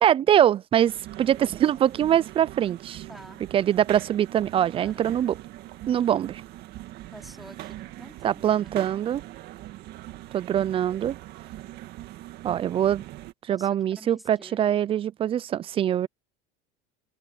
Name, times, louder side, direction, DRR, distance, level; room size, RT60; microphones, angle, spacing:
voice 1, 0.0-3.0 3.5-5.3 5.9-6.4 8.2-9.2 10.3-11.2 12.4-13.0 13.5-16.1, right 10 dB, 30° right, 0.4 m, -23 dB
sound 1, 0.9-13.3, right 15 dB, 55° right, 2.0 m, -42 dB
voice 2, 3.1-3.5 4.7-5.0 7.1-9.0 13.5-14.8, equal, ahead, 3.2 m, -48 dB
open air
supercardioid pair, 125°, 19 cm